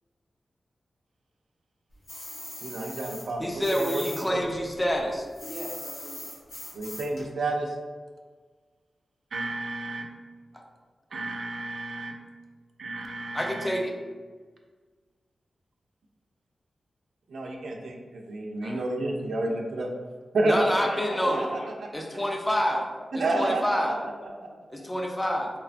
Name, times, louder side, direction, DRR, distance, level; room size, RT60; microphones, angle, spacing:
sound 1, 2.1-4.2 4.5-7.2, left 1 dB, 85° left, 0.9 m, -40 dB
voice 1, 2.6-4.4 6.7-7.7 9.3-10.1 11.1-12.1 12.8-13.8 17.3-19.9 20.3-20.7 21.1-21.6 23.1-23.9, right 2 dB, 75° right, 2 dB, 0.3 m, -30 dB
voice 2, 3.4-5.3 10.5-10.6 13.3-13.9 18.6-18.8 20.5-21.5 21.9-22.8 23.1-24.0 24.7-25.5, equal, 10° left, 1 dB, 0.3 m, -27 dB
voice 3, 5.4-6.3 20.9-21.7 22.0-22.4 23.5-23.6 23.9-24.6, left 1 dB, 60° left, -4 dB, 0.6 m, -42 dB
2.7 x 2.2 x 2.4 m, 1.4 s
wide cardioid pair, 160°, 0 cm